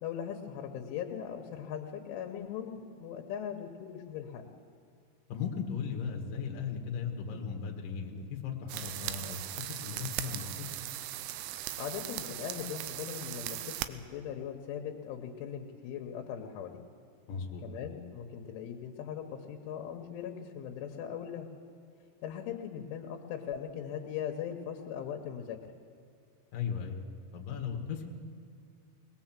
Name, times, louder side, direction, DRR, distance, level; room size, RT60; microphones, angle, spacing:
voice 1, 0.0-4.5 11.8-16.8 17.6-21.5 22.2-25.6, left 8 dB, 80° left, 3 dB, 3.5 m, -39 dB
voice 2, 5.3-9.4 9.8-10.7 17.3-17.6 26.5-27.0 27.3-28.1, left 6 dB, 55° left, 1 dB, 2.9 m, -37 dB
sound 1, 8.7-13.9, right 14 dB, 90° right, 3.2 m, -39 dB
21.5 x 20.0 x 7.4 m, 2.3 s
omnidirectional pair, 5.5 m